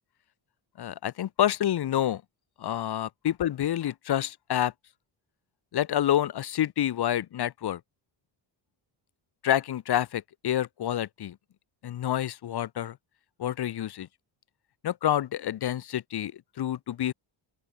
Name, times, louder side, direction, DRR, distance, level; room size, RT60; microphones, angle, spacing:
voice 1, 0.8-2.2 2.6-4.7 5.7-7.8 9.4-11.4 11.8-13.0 13.4-14.1 14.8-17.1, left 11 dB, 50° left, 0.9 m, -28 dB
open air
cardioid pair, 100°, 50 cm